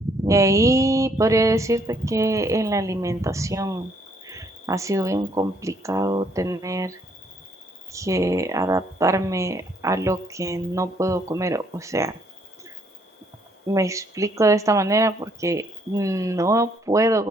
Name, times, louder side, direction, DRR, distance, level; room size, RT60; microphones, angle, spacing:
voice 1, 0.0-3.9 4.2-7.0 7.9-12.1 12.6-12.7 13.7-17.3, right 1 dB, 15° right, 10 dB, 1.0 m, -22 dB
Cricket, 1.2-16.8, left 4 dB, 55° left, 7.4 m, -48 dB
19.5 x 8.5 x 7.7 m, 0.43 s
head